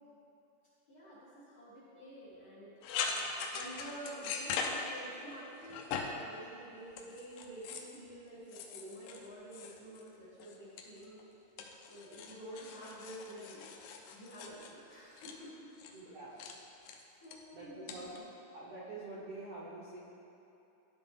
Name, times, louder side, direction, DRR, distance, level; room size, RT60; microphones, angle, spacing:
voice 1, 0.9-2.7 3.5-11.2 11.9-13.7 14.1-15.7 16.0-16.4 17.2-18.3, right 1 dB, 45° left, -10 dB, 1.2 m, -49 dB
sound 1, 2.8-5.3 5.6-6.3 6.9-8.0 8.5-10.1 10.4-11.2 11.6-15.4 15.8-16.0 16.4-16.6 16.8-17.4 17.9-18.2, left 5 dB, 80° left, 2.0 m, -41 dB
voice 2, 15.9-16.3 17.5-18.1 18.5-20.0, right 2 dB, 70° right, -8 dB, 1.6 m, -46 dB
11.5 x 4.0 x 3.6 m, 2.9 s
omnidirectional pair, 4.1 m